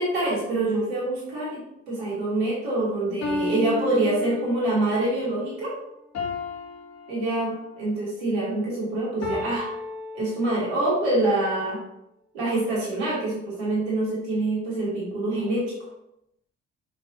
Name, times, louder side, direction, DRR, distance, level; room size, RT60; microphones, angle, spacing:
voice 1, 0.0-5.7 7.1-9.7 10.1-11.8 12.3-15.6, right 2 dB, 85° right, -6 dB, 3.0 m, -25 dB
sound 1, 3.2-4.8 6.1-7.8 9.2-10.8, left 3 dB, 55° left, 2.4 m, -33 dB
8.8 x 6.0 x 2.8 m, 0.81 s
hypercardioid pair, 45°, 32 cm